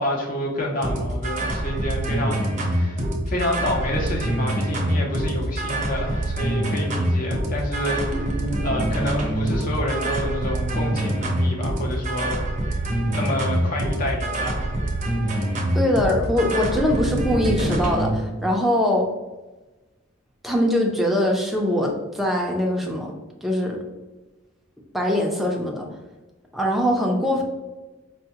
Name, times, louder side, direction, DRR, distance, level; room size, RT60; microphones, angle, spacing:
voice 1, 0.0-8.3 8.6-12.4 12.6-12.8 13.1-14.7, left 1 dB, 45° left, -1 dB, 0.6 m, -28 dB
sound 1, 0.8-18.1, right 1 dB, 40° right, 0.6 m, -25 dB
voice 2, 15.7-19.1 20.4-23.1 23.4-23.8 24.9-25.9 26.5-27.4, left 1 dB, ahead, 0 dB, 0.5 m, -22 dB
4.5 x 2.1 x 2.8 m, 1.1 s
head